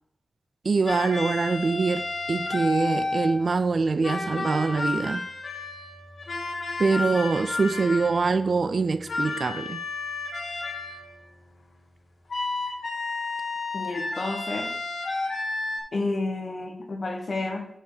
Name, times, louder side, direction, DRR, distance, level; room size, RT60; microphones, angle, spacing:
voice 1, 0.6-5.3 6.8-9.8, right 4 dB, 60° right, 0.4 m, -24 dB
sound 1, 0.9-3.5 4.0-8.3 9.1-11.2 12.3-15.8, left 3 dB, 75° left, 1.9 m, -31 dB
voice 2, 13.7-14.7 15.9-17.7, left 2 dB, 55° left, 1.4 m, -30 dB
5.8 x 5.0 x 6.6 m
wide cardioid pair, 80°, 0 cm